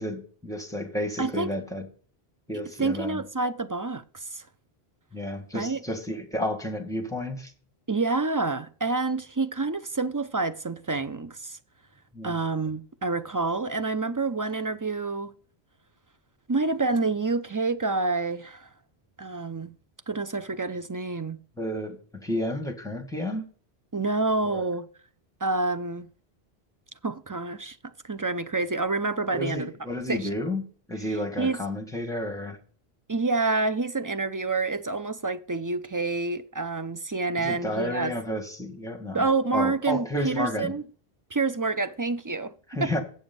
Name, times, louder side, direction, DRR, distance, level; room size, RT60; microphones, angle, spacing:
voice 1, 0.0-1.9 2.5-3.2 5.1-7.5 12.1-12.4 21.6-23.4 24.4-24.7 29.3-30.6 30.9-32.6 37.4-39.2 39.5-40.7 42.7-43.0, left 1 dB, 5° left, 1.8 m, -31 dB
voice 2, 1.2-1.5 2.8-4.4 5.5-5.8 7.9-11.6 12.2-15.3 16.5-18.7 19.2-19.7 20.1-21.4 23.9-24.9 25.4-26.1 27.0-27.8 28.0-29.7 30.1-30.3 31.4-31.6 33.1-38.1 39.1-40.8 41.3-42.5 42.8-42.9, right 3 dB, 30° right, 0.4 m, -28 dB
8.0 x 7.0 x 5.3 m
omnidirectional pair, 1.0 m